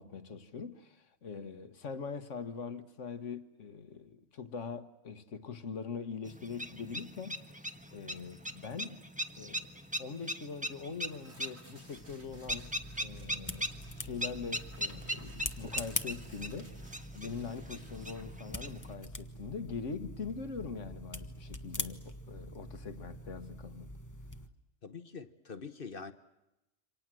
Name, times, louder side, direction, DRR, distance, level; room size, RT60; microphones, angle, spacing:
voice 1, 0.0-7.5 7.9-9.0 9.3-9.7 10.0-12.7 13.0-13.7 14.0-23.9, left 5 dB, 70° left, 1.8 m, -42 dB
sound 1, 6.3-18.9, equal, 5° right, 1.2 m, -41 dB
Tearing, 7.1-21.4, right 2 dB, 55° right, 3.9 m, -61 dB
sound 2, 11.8-24.5, left 1 dB, 15° left, 1.2 m, -44 dB
voice 2, 24.8-26.1, left 5 dB, 45° left, 1.3 m, -44 dB
28.0 x 25.5 x 7.7 m
omnidirectional pair, 1.3 m